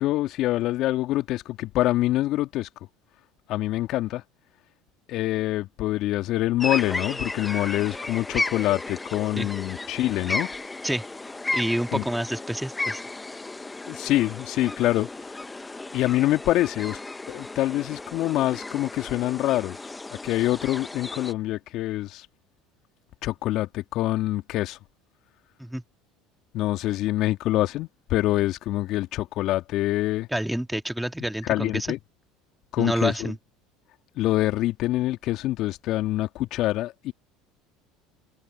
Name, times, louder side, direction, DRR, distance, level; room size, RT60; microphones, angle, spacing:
voice 1, 0.0-2.7 3.5-4.2 5.1-10.5 11.9-12.1 13.9-15.3 15.9-17.0 17.3-19.8 20.2-22.3 23.2-24.8 26.5-30.3 31.4-32.0 32.7-33.3 34.2-37.1, left 15 dB, 55° left, 2.2 m, -25 dB
sound 1, 6.6-21.3, left 2 dB, 15° left, 1.2 m, -34 dB
voice 2, 11.5-13.0 25.6-25.8 30.3-31.9 32.8-33.4, right 1 dB, 5° right, 2.1 m, -28 dB
hypercardioid pair, 70°, 0 cm